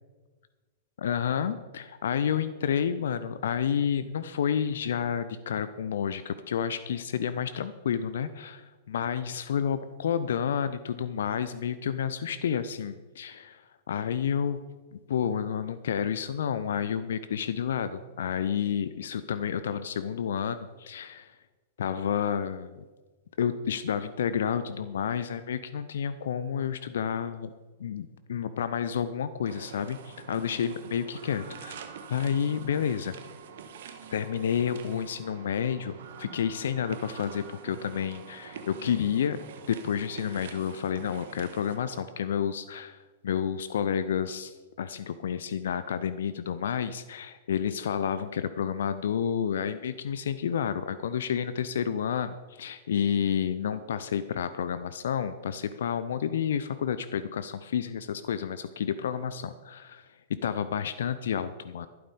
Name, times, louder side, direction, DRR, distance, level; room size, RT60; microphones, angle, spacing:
voice 1, 1.0-14.6 14.9-21.4 21.8-22.8 23.4-27.5 27.8-33.1 34.1-39.4 39.7-61.9, left 8 dB, 65° left, 13 dB, 0.6 m, -30 dB
sound 1, 29.4-42.0, right 6 dB, 60° right, 1.4 m, -46 dB
12.0 x 11.5 x 5.2 m, 1.3 s
figure-of-eight pair, 100°, 0 cm